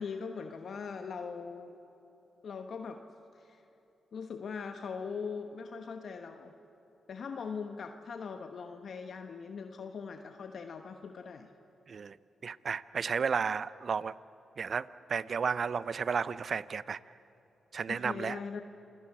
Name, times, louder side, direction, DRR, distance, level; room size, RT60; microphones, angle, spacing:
voice 1, 0.0-1.7 2.4-3.0 3.3-3.6 4.1-6.5 7.1-11.5 17.9-18.6, left 5 dB, 65° left, 6 dB, 1.1 m, -41 dB
voice 2, 12.4-14.1 14.6-17.0 17.7-18.4, right 6 dB, 60° right, 18 dB, 0.6 m, -33 dB
28.0 x 17.5 x 8.6 m, 3.0 s
supercardioid pair, 50°, 0 cm